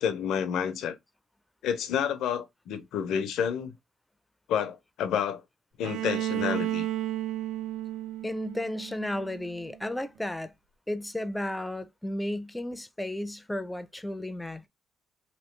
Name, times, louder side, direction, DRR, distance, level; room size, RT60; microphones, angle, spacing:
voice 1, 0.0-1.0 1.6-3.7 4.5-5.4 5.8-6.9, left 8 dB, 85° left, 0.5 m, -29 dB
Bowed string instrument, 5.8-9.7, right 14 dB, 90° right, 0.3 m, -33 dB
voice 2, 8.2-10.5 10.9-14.7, left 1 dB, 10° left, 0.4 m, -33 dB
3.0 x 2.7 x 3.1 m
cardioid pair, 90°, 0 cm